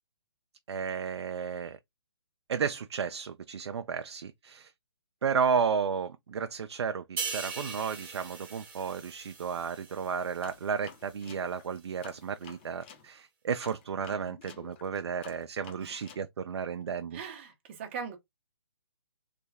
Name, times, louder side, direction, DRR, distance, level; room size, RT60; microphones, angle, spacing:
voice 1, 0.7-1.8 2.5-4.7 5.2-17.2, right 6 dB, 80° right, 0.4 m, -33 dB
sound 1, 7.2-10.7 11.1-11.3, right 5 dB, 15° right, 1.1 m, -40 dB
sound 2, 10.4-13.1 13.6-16.3, left 6 dB, 25° left, 0.5 m, -51 dB
voice 2, 17.1-18.2, right 6 dB, 30° right, 0.8 m, -40 dB
3.3 x 2.2 x 3.3 m
hypercardioid pair, 160°, 14 cm